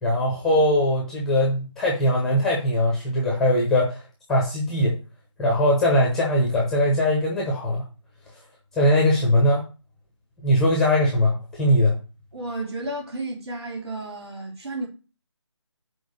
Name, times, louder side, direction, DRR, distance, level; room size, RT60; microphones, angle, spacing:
voice 1, 0.0-4.0 4.3-5.0 5.4-7.8 8.8-9.6 10.4-12.0, left 1 dB, 5° left, 1.0 m, -21 dB
voice 2, 12.3-14.9, right 2 dB, 55° right, 3.4 m, -32 dB
6.3 x 4.7 x 6.6 m
figure-of-eight pair, 160°, 16 cm